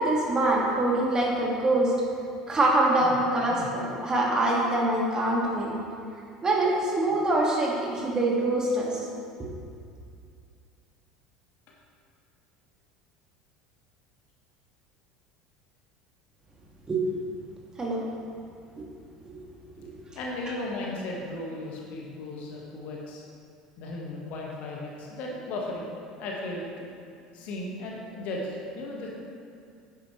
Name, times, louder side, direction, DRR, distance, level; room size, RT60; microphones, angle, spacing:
voice 1, 0.0-2.0 2.5-5.8 6.4-9.0 9.4-9.5 16.9-17.0 17.8-18.0 18.8-18.9 19.8-19.9, right 2 dB, 20° right, -3 dB, 2.2 m, -24 dB
voice 2, 20.1-23.2 23.8-25.9 26.2-26.7 27.3-29.1, left 2 dB, 50° left, -2 dB, 1.7 m, -36 dB
10.0 x 9.1 x 3.3 m, 2.4 s
figure-of-eight pair, 70°, 3 cm